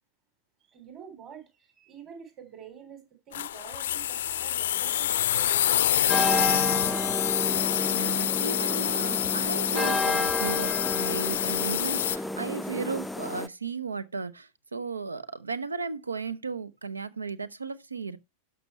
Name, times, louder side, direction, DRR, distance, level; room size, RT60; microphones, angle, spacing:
voice 1, 0.7-6.8, right 8 dB, 30° right, 3.7 m, -48 dB
sound 1, 3.3-12.2, left 12 dB, 60° left, 0.5 m, -27 dB
sound 2, 6.1-13.5, left 1 dB, 5° left, 0.4 m, -31 dB
voice 2, 7.9-18.2, right 4 dB, 75° right, 0.8 m, -35 dB
12.0 x 6.3 x 3.2 m
figure-of-eight pair, 90°, 0 cm